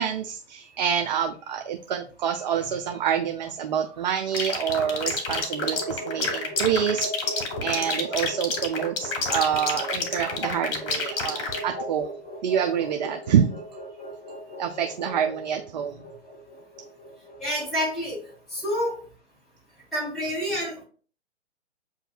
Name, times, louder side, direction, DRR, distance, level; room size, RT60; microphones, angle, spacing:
voice 1, 0.0-12.0 12.4-13.6 14.6-16.0, right 8 dB, 40° right, 5 dB, 0.4 m, -27 dB
sound 1, 4.2-18.4, right 1 dB, 25° left, 1.6 m, -39 dB
sound 2, 4.3-11.6, left 4 dB, 50° left, 1.6 m, -28 dB
voice 2, 17.4-18.2 18.5-19.0 19.9-20.8, equal, ahead, -8 dB, 2.2 m, -28 dB
7.6 x 2.7 x 2.3 m, 0.42 s
hypercardioid pair, 130°, 35 cm